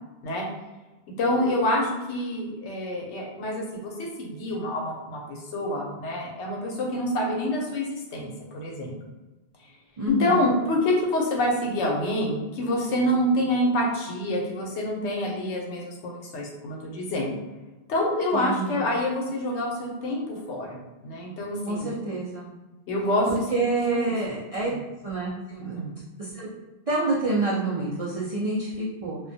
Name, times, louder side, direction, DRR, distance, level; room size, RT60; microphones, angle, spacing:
voice 1, 1.2-9.0 10.1-17.4 17.9-21.9 22.9-23.3 23.9-24.0 25.6-25.9, left 1 dB, 90° left, -1 dB, 1.0 m, -27 dB
voice 2, 10.0-10.4 18.3-18.8 21.6-22.5 23.3-24.7 25.0-25.8 26.2-26.5 26.9-29.2, right 2 dB, 65° right, -7 dB, 0.3 m, -27 dB
2.3 x 2.2 x 2.6 m, 1.1 s
omnidirectional pair, 1.2 m